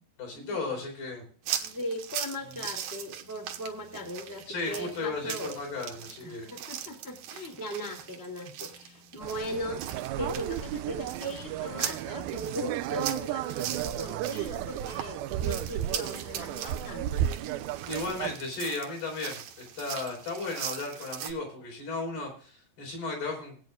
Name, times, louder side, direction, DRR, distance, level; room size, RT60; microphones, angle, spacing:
voice 1, 0.2-1.2 4.5-6.5 17.9-23.5, left 3 dB, 65° left, 0 dB, 6.3 m, -35 dB
sound 1, 1.4-21.3, right 10 dB, 70° right, 2.7 m, -40 dB
voice 2, 1.6-5.6 6.2-9.8 10.2-17.2, left 1 dB, 10° left, 0 dB, 1.3 m, -38 dB
sound 2, 9.2-18.4, right 12 dB, 85° right, 2.1 m, -33 dB
21.0 x 9.1 x 2.4 m, 0.43 s
omnidirectional pair, 4.9 m